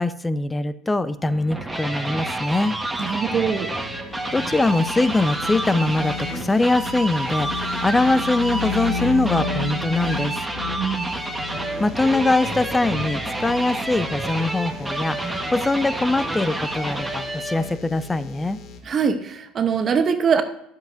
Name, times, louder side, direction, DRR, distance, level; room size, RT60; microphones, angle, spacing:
voice 1, 0.0-2.8 4.3-10.4 11.8-18.6, left 2 dB, 15° left, 14 dB, 0.6 m, -22 dB
sound 1, 1.3-17.8, right 1 dB, 10° right, 1.4 m, -29 dB
sound 2, 3.0-18.8, left 4 dB, 60° left, 1.3 m, -35 dB
voice 2, 3.0-3.7 10.8-11.1 18.8-20.4, right 6 dB, 40° right, 9 dB, 0.9 m, -22 dB
11.0 x 7.7 x 2.6 m, 0.77 s
hypercardioid pair, 70°, 0 cm